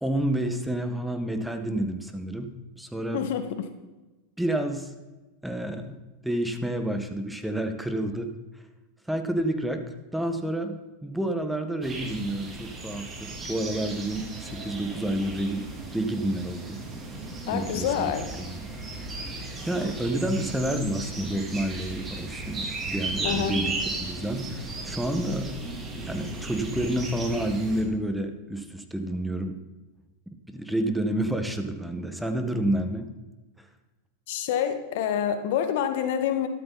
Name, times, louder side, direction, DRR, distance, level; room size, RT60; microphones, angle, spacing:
voice 1, 0.0-2.5 2.8-3.2 4.4-4.9 5.4-6.0 6.2-8.3 9.1-9.8 10.1-10.7 11.0-15.6 15.9-16.8 17.5-17.9 18.4-18.5 19.6-23.7 24.0-25.5 26.1-29.6 30.5-33.1, right 1 dB, 5° right, 6 dB, 1.5 m, -29 dB
voice 2, 3.1-3.7 17.5-18.3 23.2-23.6 34.3-36.5, left 9 dB, 65° left, 8 dB, 1.8 m, -27 dB
sound 1, 11.8-27.8, right 2 dB, 20° right, 3.2 m, -36 dB
12.5 x 12.5 x 4.2 m, 1.2 s
hypercardioid pair, 115°, 0 cm